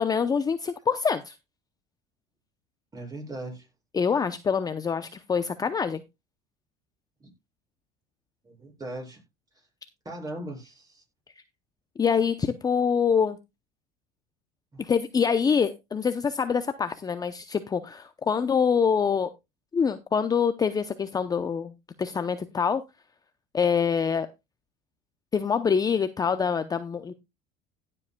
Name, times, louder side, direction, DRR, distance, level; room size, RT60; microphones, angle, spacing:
voice 1, 0.0-1.3 3.9-6.0 12.0-13.4 14.8-19.3 19.7-21.7 22.0-22.8 23.5-24.3 25.3-27.1, left 6 dB, 20° left, 0.6 m, -25 dB
voice 2, 2.9-3.7 7.2-7.3 8.4-9.2 10.0-11.0 14.7-14.8, right 1 dB, 20° right, 6.5 m, -38 dB
16.5 x 7.6 x 2.2 m
supercardioid pair, 105°, 17 cm